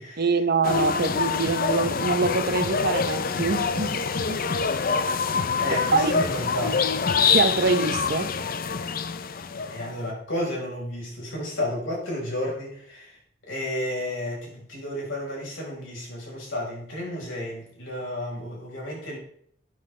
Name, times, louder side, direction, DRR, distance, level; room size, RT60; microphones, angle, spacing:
voice 1, 0.2-4.0 4.3-4.4 5.9-6.1 7.3-8.3, right 3 dB, 55° right, 0.8 m, -24 dB
sound 1, 0.6-10.0, left 5 dB, 50° left, 0.6 m, -25 dB
voice 2, 5.6-6.8 9.6-19.2, left 1 dB, 90° left, 4.7 m, -32 dB
11.5 x 9.5 x 3.3 m
head